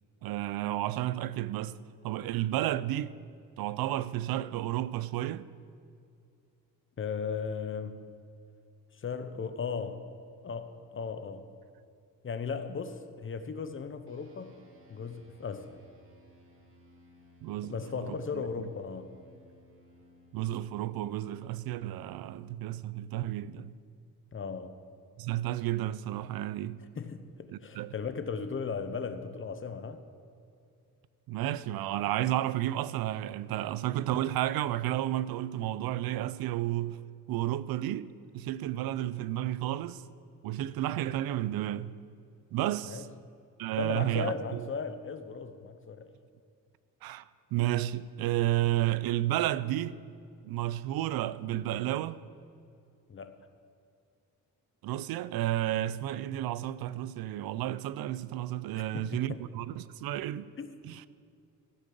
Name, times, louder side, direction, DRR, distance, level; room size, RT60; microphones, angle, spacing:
voice 1, 0.2-1.8 2.0-3.1 3.6-5.5 17.4-18.7 20.3-23.7 25.2-26.8 27.5-27.9 31.3-37.0 37.3-40.0 40.4-42.0 42.5-43.1 43.6-44.7 47.0-50.0 50.4-52.2 54.8-60.5 60.8-61.0, right 13 dB, 80° right, 0.5 m, -32 dB
voice 2, 7.0-8.1 8.9-10.1 10.4-11.5 12.2-14.6 14.9-15.8 17.6-19.1 24.3-24.8 27.0-30.0 42.8-43.1 43.8-46.1 53.1-53.5 58.7-59.4 60.6-60.7, left 5 dB, 35° left, 0.8 m, -37 dB
sound 1, 14.1-23.8, left 1 dB, 35° right, 2.3 m, -61 dB
14.5 x 5.2 x 7.6 m
cardioid pair, 95°, 36 cm